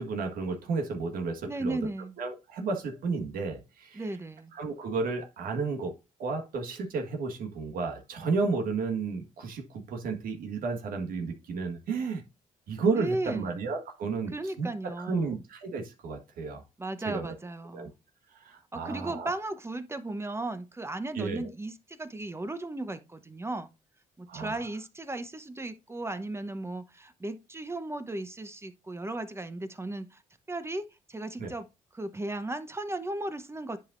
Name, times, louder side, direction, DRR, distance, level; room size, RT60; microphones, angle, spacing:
voice 1, 0.0-1.8 2.2-4.0 4.5-12.2 12.7-16.6 17.0-17.3 17.7-17.9 18.4-19.3 21.1-21.5 24.3-24.6 31.4-31.5, right 4 dB, 75° right, 1.6 m, -32 dB
voice 2, 1.5-2.1 3.9-4.5 12.9-13.6 14.3-15.4 16.8-17.9 18.7-23.7 24.2-30.2 30.5-30.8 31.1-31.7 31.9-33.8, right 2 dB, 15° right, 0.9 m, -35 dB
10.5 x 5.2 x 2.6 m
cardioid pair, 80°, 15 cm